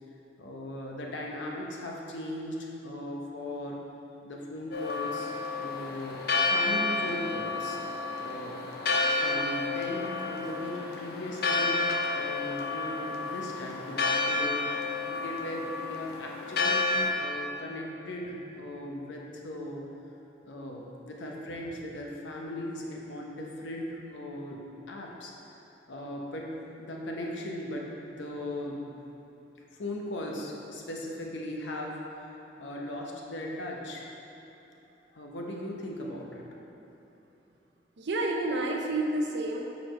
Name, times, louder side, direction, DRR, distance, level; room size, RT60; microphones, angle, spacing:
voice 1, 0.4-3.8 4.2-5.3 5.6-6.2 6.5-7.8 8.2-8.6 9.1-11.9 12.1-19.9 20.4-24.6 24.9-25.3 25.9-28.8 29.8-32.3 32.6-34.0 35.1-36.6, left 1 dB, 85° left, -1 dB, 0.8 m, -38 dB
Church bell, 4.7-17.1, left 3 dB, 55° left, 0.5 m, -30 dB
voice 2, 38.0-39.6, right 2 dB, 70° right, 1 dB, 0.6 m, -29 dB
4.8 x 4.0 x 5.1 m, 3.0 s
head